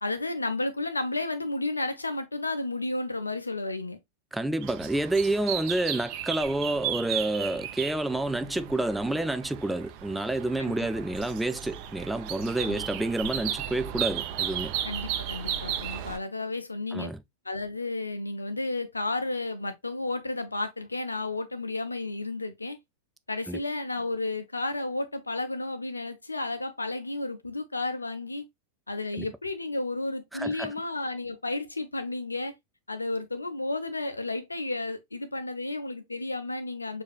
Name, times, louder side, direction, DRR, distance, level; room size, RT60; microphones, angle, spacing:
voice 1, 0.0-4.0 10.6-10.7 12.6-12.8 14.8-17.1 17.4-22.8 23.3-28.4 28.9-32.5 32.9-37.0, left 2 dB, 80° left, 0.7 m, -32 dB
voice 2, 4.3-14.7 16.9-17.2 23.5-23.6 29.2-29.3 30.3-30.7, right 2 dB, 5° right, 0.4 m, -29 dB
sound 1, 4.6-16.2, right 10 dB, 45° right, 0.7 m, -35 dB
6.4 x 2.7 x 2.3 m
figure-of-eight pair, 90°, 0 cm